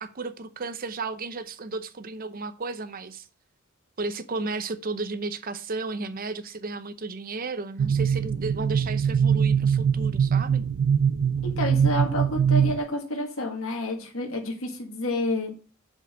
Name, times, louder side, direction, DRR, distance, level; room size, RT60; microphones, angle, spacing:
voice 1, 0.0-3.2 4.0-10.6, right 3 dB, 40° right, 0.7 m, -33 dB
sound 1, 7.8-12.8, right 7 dB, 85° right, 0.4 m, -23 dB
voice 2, 11.4-15.5, left 1 dB, 70° left, 1.7 m, -29 dB
6.7 x 4.8 x 6.3 m
head